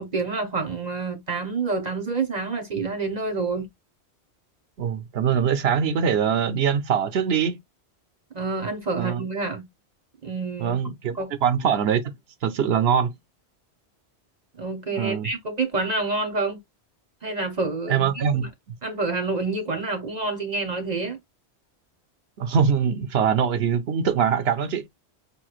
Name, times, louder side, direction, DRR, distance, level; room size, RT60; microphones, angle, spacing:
voice 1, 0.0-3.7 8.3-9.6 10.2-10.8 11.1-11.3 14.5-16.6 17.2-18.1 18.8-21.2, right 3 dB, 40° right, 0.8 m, -28 dB
voice 2, 4.8-7.6 9.0-9.2 10.6-12.1 12.4-13.1 15.0-15.3 17.9-18.5 22.4-24.8, right 7 dB, 70° right, 0.9 m, -23 dB
5.3 x 3.0 x 2.3 m
omnidirectional pair, 1.1 m